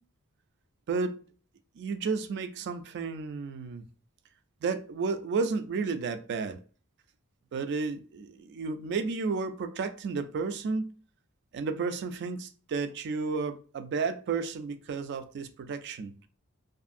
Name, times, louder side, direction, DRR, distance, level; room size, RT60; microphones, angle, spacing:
voice 1, 0.9-1.2 1.8-3.8 4.6-6.6 7.5-10.9 11.5-16.1, right 4 dB, 50° right, 0.3 m, -32 dB
2.6 x 2.5 x 2.4 m
head